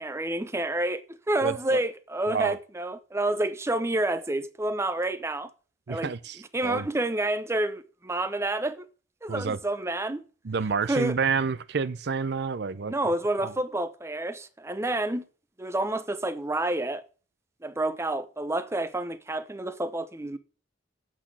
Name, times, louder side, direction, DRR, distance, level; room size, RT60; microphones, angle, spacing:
voice 1, 0.0-5.5 5.9-6.1 6.5-8.9 9.2-10.2 10.9-11.2 12.9-15.3 15.6-17.0 17.6-20.4, right 1 dB, 15° right, 0.6 m, -29 dB
voice 2, 1.4-1.8 2.3-2.6 5.9-6.9 9.3-9.6 10.4-12.9 13.4-13.5, right 5 dB, 60° right, 0.6 m, -29 dB
8.5 x 6.2 x 7.4 m
head